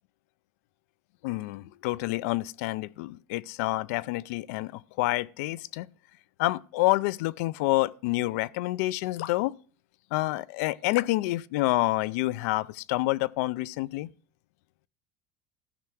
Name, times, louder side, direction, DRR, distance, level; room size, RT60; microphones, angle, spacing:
voice 1, 1.2-5.9 6.4-9.5 10.1-14.1, left 19 dB, 80° left, 0.4 m, -28 dB
14.0 x 5.7 x 6.2 m
cardioid pair, 155°, 8 cm